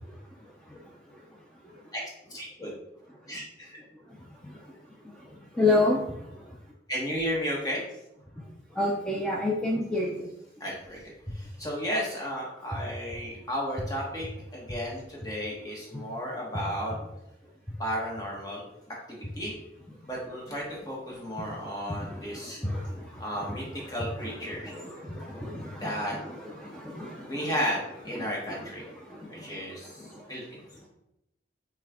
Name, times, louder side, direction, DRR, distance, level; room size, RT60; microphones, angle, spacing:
voice 1, 0.4-0.8 1.6-1.8 4.1-4.2 4.4-4.6 5.0-6.5 8.4-8.5 8.7-10.3 21.1-21.5 22.0-23.9 24.2-27.5 28.2-30.2, left 2 dB, 5° left, -3 dB, 0.4 m, -32 dB
voice 2, 2.3-2.7 3.3-3.8 6.9-7.8 10.6-14.3 14.5-16.9 17.8-18.6 19.1-19.5 20.1-22.6 23.2-24.7 25.8-26.2 27.2-28.8 29.3-30.6, equal, 20° left, -3 dB, 1.1 m, -33 dB
6.0 x 2.4 x 3.5 m, 0.86 s
head